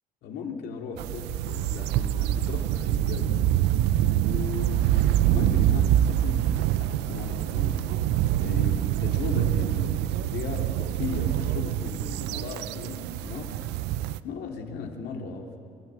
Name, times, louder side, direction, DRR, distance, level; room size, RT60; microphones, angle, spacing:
voice 1, 0.2-3.6 4.2-7.9 8.4-13.6 14.2-15.6, left 5 dB, 75° left, 2 dB, 2.6 m, -37 dB
sound 1, 1.0-14.2, right 12 dB, 85° right, 0.6 m, -25 dB
28.5 x 12.5 x 7.8 m, 2.8 s
cardioid pair, 110°, 17 cm